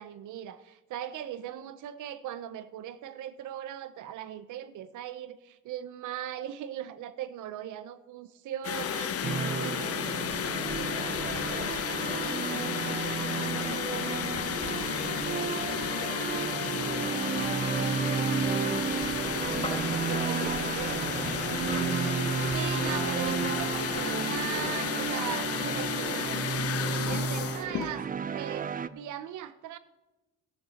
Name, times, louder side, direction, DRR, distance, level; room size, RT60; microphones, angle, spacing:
voice 1, 0.0-9.1 9.6-9.9 19.5-21.0 21.9-26.4 27.1-28.0 28.3-29.8, right 11 dB, 80° right, 13 dB, 0.8 m, -39 dB
sound 1, 8.6-28.0, left 9 dB, 50° left, 0.7 m, -33 dB
voice 2, 8.8-18.4 20.3-21.3 26.8-28.0, left 5 dB, 70° left, 3 dB, 2.1 m, -47 dB
sound 2, 9.2-28.9, right 7 dB, 30° right, 0.5 m, -32 dB
sound 3, 10.2-16.3 18.0-24.3 24.7-24.8, left 2 dB, 20° left, 3.3 m, -44 dB
14.0 x 6.8 x 6.5 m, 1.1 s
cardioid pair, 90°, 30 cm